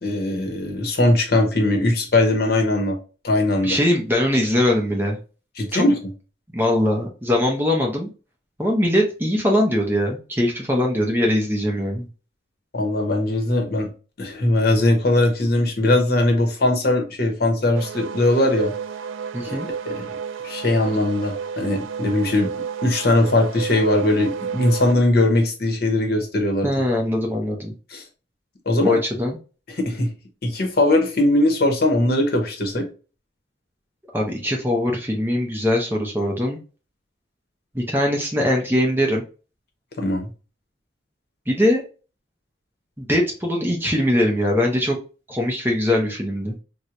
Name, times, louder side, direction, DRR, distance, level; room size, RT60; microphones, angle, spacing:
voice 1, 0.0-3.0 3.2-3.8 5.6-6.1 12.7-13.9 14.2-18.7 19.5-19.6 19.9-20.1 20.4-22.5 22.8-26.7 27.9-28.0 28.7-29.0 29.7-30.1 30.4-32.9 40.0-40.3, left 1 dB, 50° left, 0.8 m, -20 dB
voice 2, 3.6-5.2 5.7-5.8 6.5-8.1 8.6-12.1 19.3-19.7 26.6-27.7 28.8-29.4 34.1-36.6 37.7-39.2 41.5-41.8 43.0-45.0 45.3-46.6, left 1 dB, 10° right, 0.6 m, -21 dB
sound 1, 17.7-24.9, right 6 dB, 75° right, 0.3 m, -31 dB
4.3 x 2.1 x 2.5 m
head